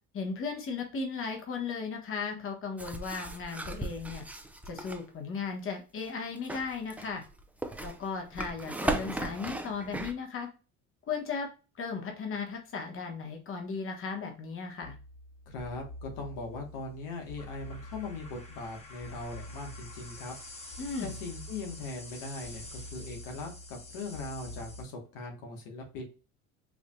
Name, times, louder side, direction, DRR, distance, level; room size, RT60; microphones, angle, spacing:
voice 1, 0.1-4.2 4.7-7.2 7.8-10.5 11.1-11.5 11.8-14.9 20.8-21.1, left 5 dB, 45° left, 3 dB, 1.2 m, -36 dB
sound 1, 2.8-5.0 6.3-10.1, right 2 dB, 5° right, 0.6 m, -36 dB
sound 2, 14.8-24.8, left 1 dB, 20° left, 1.3 m, -45 dB
voice 2, 15.5-20.3 21.0-26.0, left 3 dB, 90° left, 2 dB, 1.3 m, -40 dB
4.9 x 2.7 x 2.3 m, 0.33 s
supercardioid pair, 95°, 31 cm